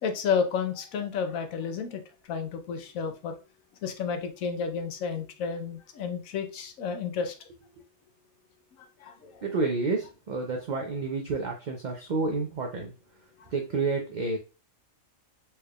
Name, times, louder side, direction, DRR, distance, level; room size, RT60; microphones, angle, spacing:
voice 1, 0.0-3.3 3.8-7.3 9.0-9.4 13.4-13.5, left 6 dB, 90° left, 1.1 m, -31 dB
voice 2, 9.4-12.9 13.5-14.4, right 3 dB, 50° right, 0.5 m, -29 dB
4.3 x 3.3 x 2.3 m
omnidirectional pair, 1.4 m